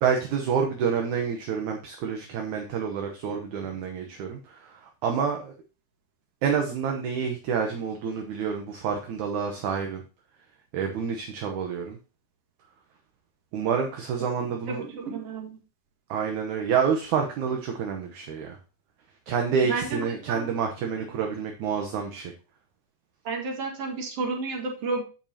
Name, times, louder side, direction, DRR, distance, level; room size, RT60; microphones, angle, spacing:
voice 1, 0.0-5.5 6.4-10.0 10.7-12.0 13.5-14.8 16.1-18.6 19.3-22.3, right 6 dB, 70° right, 3 dB, 2.0 m, -28 dB
voice 2, 14.6-15.6 19.6-20.5 23.2-25.0, right 4 dB, 50° right, 0 dB, 2.4 m, -31 dB
14.5 x 5.3 x 2.8 m, 0.33 s
omnidirectional pair, 4.3 m